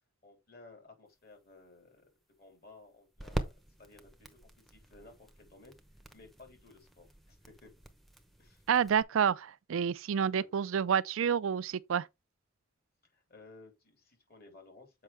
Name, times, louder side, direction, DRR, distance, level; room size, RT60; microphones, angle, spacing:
voice 1, 0.2-2.1 2.4-3.5 3.8-5.8 6.1-7.7 8.4-8.6 10.4-10.5 13.0-15.0, left 3 dB, 45° left, 3.4 m, -56 dB
sound 1, 1.1-9.0, right 1 dB, ahead, 0.8 m, -44 dB
voice 2, 8.7-12.1, right 7 dB, 70° right, 0.4 m, -29 dB
7.6 x 5.4 x 3.4 m
head